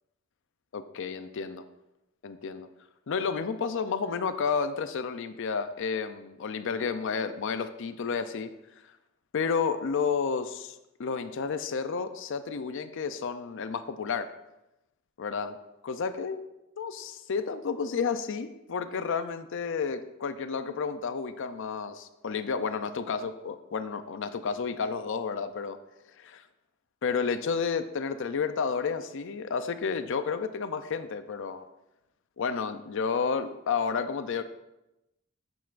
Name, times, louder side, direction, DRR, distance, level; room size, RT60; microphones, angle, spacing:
voice 1, 0.7-1.6 2.2-2.7 3.1-8.5 9.3-14.3 15.2-15.6 15.8-16.4 16.8-25.8 26.2-26.4 27.0-31.6 32.4-34.4, left 5 dB, 60° left, 11 dB, 0.5 m, -31 dB
10.5 x 8.1 x 2.5 m, 0.93 s
head